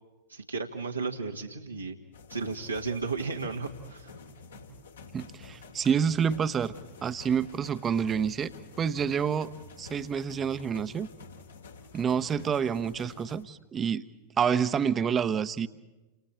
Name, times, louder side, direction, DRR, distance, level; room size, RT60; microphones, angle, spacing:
voice 1, 0.3-2.0 2.3-4.1, right 4 dB, 85° right, 0 dB, 1.8 m, -34 dB
sound 1, 2.1-13.4, left 4 dB, 70° left, 3.1 m, -49 dB
voice 2, 5.1-6.7 7.0-8.5 8.8-9.5 9.8-11.1 11.9-14.1 14.4-15.7, right 7 dB, 25° right, 13 dB, 1.0 m, -28 dB
30.0 x 28.0 x 4.4 m, 1.1 s
figure-of-eight pair, 90°, 0 cm